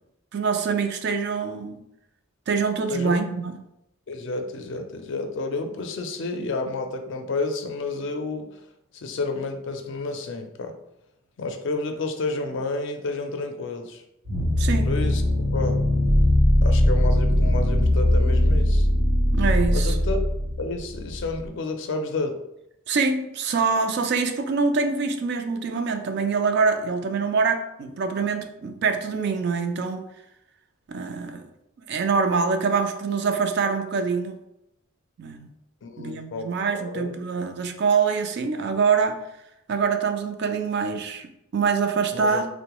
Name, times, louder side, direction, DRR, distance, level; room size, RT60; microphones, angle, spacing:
voice 1, 0.3-1.8 2.5-3.5 14.6-14.9 19.3-20.0 22.9-30.0 30.9-31.4 31.8-34.4 35.2-35.5 36.0-39.2 39.7-41.3 41.5-42.5, right 5 dB, 55° right, 6 dB, 0.4 m, -24 dB
voice 2, 4.1-8.5 8.9-10.8 11.4-14.0 14.8-15.2 15.5-15.8 16.6-18.9 19.7-20.2 20.6-22.4 35.8-37.1 42.1-42.4, left 3 dB, 65° left, 5 dB, 0.4 m, -30 dB
sound 1, 14.3-21.4, left 1 dB, 85° right, 0.7 m, -20 dB
3.6 x 2.1 x 2.9 m, 0.83 s
head